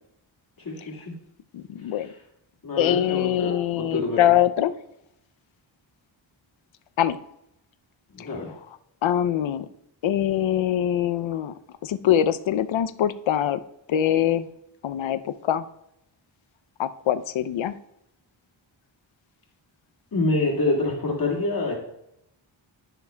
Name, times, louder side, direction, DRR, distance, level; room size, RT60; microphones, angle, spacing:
voice 1, 0.6-1.1 1.9-2.2 2.6-4.4 8.1-8.5 20.1-21.8, left 2 dB, 45° left, -4 dB, 2.0 m, -27 dB
voice 2, 1.5-2.1 2.8-4.7 7.0-7.2 8.2-8.3 9.0-9.7 10.0-11.5 11.8-13.6 13.9-14.5 14.8-15.6 16.8-17.7, left 11 dB, 75° left, 12 dB, 0.6 m, -23 dB
13.0 x 5.9 x 2.2 m, 0.79 s
wide cardioid pair, 95°, 47 cm